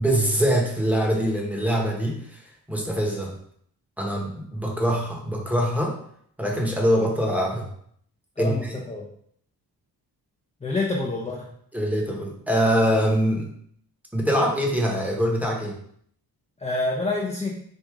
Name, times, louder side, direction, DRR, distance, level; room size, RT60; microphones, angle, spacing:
voice 1, 0.0-2.4 2.7-3.3 4.0-6.0 6.4-7.7 8.4-8.7 11.7-13.5 14.1-15.8, equal, 5° right, -1 dB, 1.0 m, -23 dB
voice 2, 8.4-9.1 10.6-11.5 16.6-17.6, left 2 dB, 15° left, -2 dB, 0.6 m, -27 dB
4.8 x 2.6 x 3.6 m, 0.65 s
cardioid pair, 85°, 39 cm